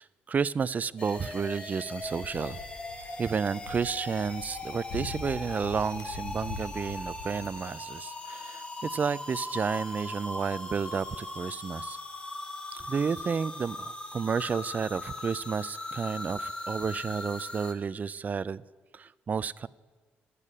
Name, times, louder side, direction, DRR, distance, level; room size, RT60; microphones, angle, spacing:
voice 1, 0.0-2.6 3.2-12.0 12.7-18.6 18.9-19.7, right 6 dB, 35° right, 20 dB, 0.4 m, -31 dB
sound 1, 1.0-17.7, left 2 dB, 25° left, 1.3 m, -39 dB
sound 2, 2.0-7.5, left 3 dB, 85° left, 1.4 m, -43 dB
10.5 x 8.3 x 8.6 m, 1.4 s
cardioid pair, 80°, 5 cm